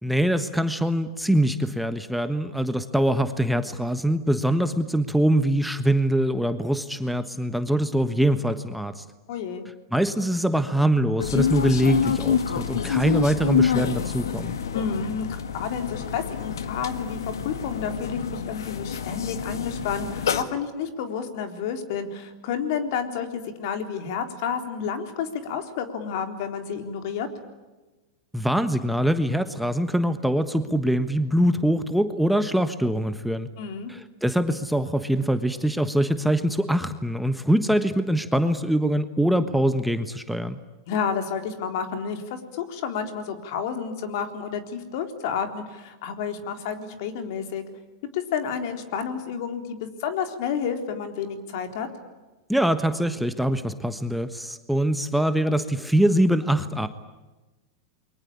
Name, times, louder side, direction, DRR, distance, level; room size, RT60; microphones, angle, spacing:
voice 1, 0.0-9.0 9.9-14.6 28.3-33.5 33.9-40.6 52.5-56.9, right 1 dB, ahead, 9 dB, 1.3 m, -23 dB
voice 2, 9.3-9.7 14.7-27.3 33.6-33.9 40.9-47.6 48.1-51.9, left 7 dB, 60° left, 7 dB, 3.8 m, -30 dB
Japan Kyoto Busride, 11.2-20.4, left 7 dB, 90° left, 1.7 m, -27 dB
29.0 x 23.0 x 8.7 m, 1.1 s
hypercardioid pair, 120°, 2 cm